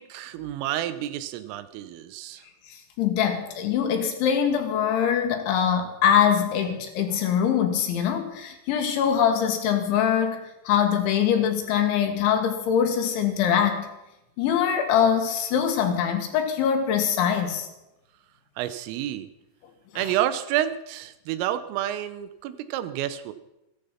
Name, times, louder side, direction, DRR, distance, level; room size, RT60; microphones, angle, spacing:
voice 1, 0.0-2.4 18.6-19.3 20.0-23.3, right 12 dB, 85° right, 12 dB, 3.5 m, -29 dB
voice 2, 2.7-10.4 10.7-13.9 14.4-17.7 19.9-20.1, left 8 dB, 70° left, 5 dB, 3.8 m, -23 dB
15.0 x 14.5 x 5.7 m, 0.91 s
omnidirectional pair, 5.8 m